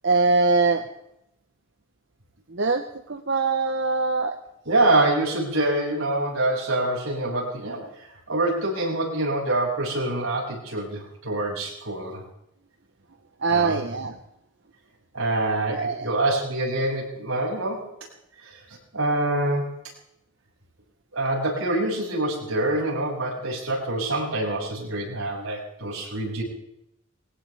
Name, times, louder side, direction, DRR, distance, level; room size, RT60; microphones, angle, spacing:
voice 1, 0.0-0.8 2.5-2.8 3.1-4.3 13.4-14.1 15.7-16.1, right 3 dB, 55° right, 6 dB, 1.0 m, -22 dB
voice 2, 4.6-7.8 8.3-12.2 13.5-13.8 15.1-17.8 18.9-19.7 21.1-26.4, right 2 dB, 85° right, -2 dB, 6.7 m, -25 dB
22.0 x 18.0 x 3.5 m, 0.79 s
head